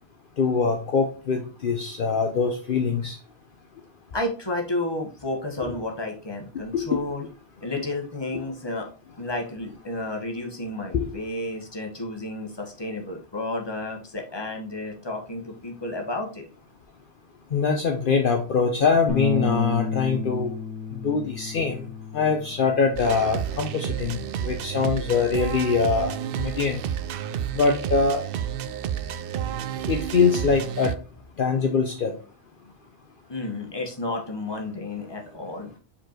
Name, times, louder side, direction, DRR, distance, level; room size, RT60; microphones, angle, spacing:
voice 1, 0.4-3.2 5.6-5.7 6.7-7.0 8.3-8.4 10.9-11.1 17.5-20.5 21.0-21.8 22.1-26.8 27.5-28.2 29.9-30.9 31.4-32.1, left 5 dB, 55° left, 3 dB, 0.9 m, -23 dB
voice 2, 4.1-7.2 7.6-8.9 9.2-16.4 33.3-35.7, left 2 dB, 25° left, 2 dB, 1.3 m, -31 dB
Bass guitar, 19.1-25.3, left 3 dB, ahead, 1.5 m, -34 dB
sound 1, 23.0-31.0, right 9 dB, 65° right, 0.7 m, -30 dB
5.2 x 4.4 x 4.4 m, 0.36 s
omnidirectional pair, 1.1 m